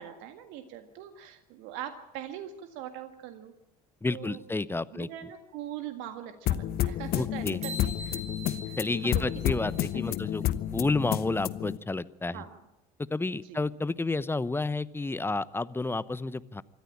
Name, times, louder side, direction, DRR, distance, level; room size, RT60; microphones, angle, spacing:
voice 1, 0.0-3.5 4.1-4.4 4.9-8.2 8.6-8.8 9.0-10.0 12.2-12.6 13.4-13.6, right 10 dB, 65° right, 7 dB, 1.8 m, -42 dB
voice 2, 4.0-5.1 7.1-7.6 8.8-10.4 10.7-12.4 13.1-16.6, left 3 dB, 10° left, 18 dB, 0.9 m, -30 dB
sound 1, 6.5-11.8, left 12 dB, 50° left, 1.1 m, -30 dB
sound 2, 7.6-10.2, right 1 dB, 35° right, 6.4 m, -43 dB
25.0 x 14.0 x 8.7 m, 0.97 s
hypercardioid pair, 75°, 19 cm